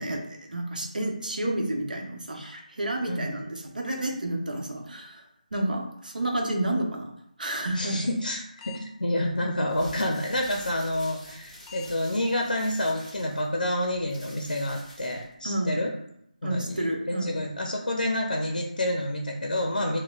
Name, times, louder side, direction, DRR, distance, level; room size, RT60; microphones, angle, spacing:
voice 1, 0.0-5.2 5.5-7.1 7.4-8.1 15.4-15.9 16.4-17.4, right 1 dB, 80° right, 2 dB, 0.8 m, -30 dB
voice 2, 7.7-15.9 16.4-20.0, left 1 dB, 85° left, 1 dB, 0.5 m, -28 dB
sound 1, 8.2-8.9 9.2-9.4 9.7-9.9 10.3-10.4 10.8-10.9 11.3-11.4 11.7-11.9 12.3-12.4 12.8-12.9 13.3-13.4 13.8-14.0, left 10 dB, 20° left, 0.3 m, -46 dB
sound 2, 9.7-15.3, equal, ahead, 0.9 m, -48 dB
4.3 x 2.1 x 2.3 m, 0.75 s
figure-of-eight pair, 160°, 4 cm